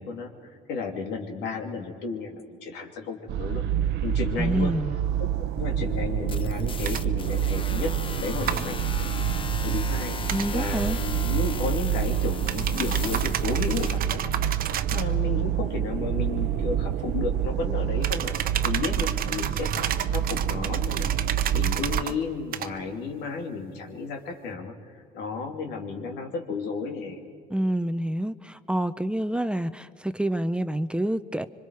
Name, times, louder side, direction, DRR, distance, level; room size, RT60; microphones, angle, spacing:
voice 1, 0.0-3.6 4.0-4.8 5.4-7.9 8.2-9.1 9.6-10.2 10.5-14.3 14.9-18.4 18.6-21.1 21.5-24.8 25.1-27.2, left 4 dB, 90° left, 3 dB, 2.8 m, -33 dB
sound 1, 3.3-22.0, right 9 dB, 85° right, 0.8 m, -27 dB
voice 2, 4.4-4.9 10.3-11.0 27.5-31.5, right 1 dB, 5° right, 12 dB, 0.6 m, -27 dB
sound 2, 6.3-14.0, left 5 dB, 30° left, 0.8 m, -38 dB
sound 3, 6.8-7.0 8.5-8.7 10.3-10.5 12.5-15.1 18.0-22.1 22.5-22.7, right 10 dB, 60° right, 1.0 m, -31 dB
26.5 x 24.5 x 4.8 m, 2.2 s
cardioid pair, 110°, 17 cm